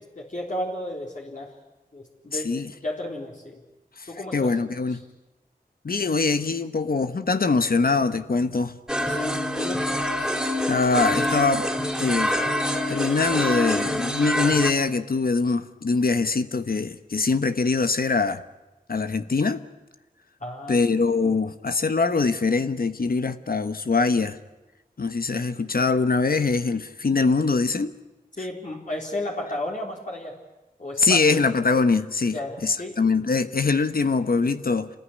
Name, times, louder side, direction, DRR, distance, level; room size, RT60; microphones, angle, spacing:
voice 1, 0.2-1.5 1.9-3.6 4.1-4.5 9.1-9.9 10.2-10.3 20.4-21.0 28.3-30.4 30.8-31.5 32.3-33.0, left 1 dB, 55° left, 4.0 m, -33 dB
voice 2, 2.3-2.7 4.0-4.1 4.3-5.0 5.8-8.8 10.7-11.7 12.0-12.4 12.9-18.4 18.9-19.6 20.7-24.4 25.0-27.9 31.0-34.9, left 4 dB, 70° left, 1.2 m, -23 dB
sound 1, 8.9-14.7, left 1 dB, 5° right, 3.2 m, -26 dB
27.5 x 20.0 x 9.9 m
wide cardioid pair, 60°, 16 cm